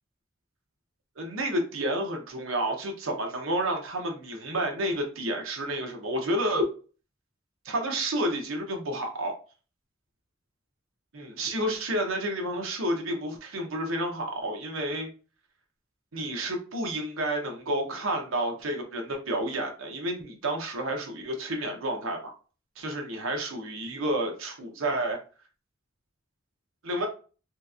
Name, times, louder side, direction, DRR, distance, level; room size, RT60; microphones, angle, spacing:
voice 1, 1.2-6.7 7.6-9.3 11.1-15.1 16.1-22.4 22.8-25.2 26.8-27.1, right 1 dB, 90° right, 2 dB, 0.8 m, -30 dB
3.2 x 2.8 x 2.4 m, 0.37 s
head